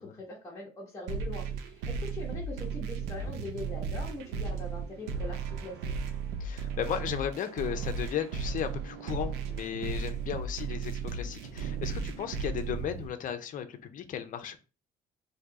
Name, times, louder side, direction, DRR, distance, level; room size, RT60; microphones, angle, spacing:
voice 1, 0.0-5.9, left 2 dB, 20° left, -5 dB, 0.9 m, -42 dB
sound 1, 1.1-13.1, right 5 dB, 85° right, 0.5 m, -35 dB
voice 2, 6.4-14.6, left 9 dB, 50° left, 8 dB, 0.6 m, -35 dB
2.7 x 2.3 x 3.9 m, 0.34 s
cardioid pair, 110°, 17 cm